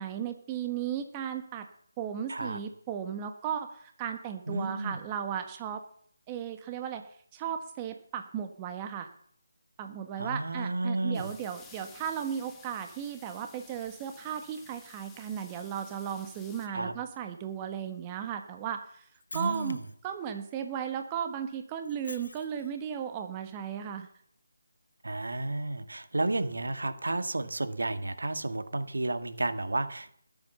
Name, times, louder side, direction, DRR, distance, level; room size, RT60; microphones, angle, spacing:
voice 1, 0.0-1.7 2.0-5.8 6.3-7.0 7.3-9.1 9.8-19.1 19.3-19.8 20.0-24.1, right 8 dB, 20° right, 7 dB, 1.4 m, -35 dB
voice 2, 2.3-2.6 4.5-5.0 10.2-11.3 16.7-16.9 19.3-19.8 25.0-30.2, right 2 dB, 80° right, 11 dB, 1.8 m, -32 dB
sound 1, 11.1-16.7, left 5 dB, 10° left, 1.5 m, -54 dB
Shatter, 19.0-20.1 21.8-22.8, left 2 dB, 80° left, 1.0 m, -46 dB
20.0 x 8.3 x 6.9 m, 0.62 s
figure-of-eight pair, 165°, 0 cm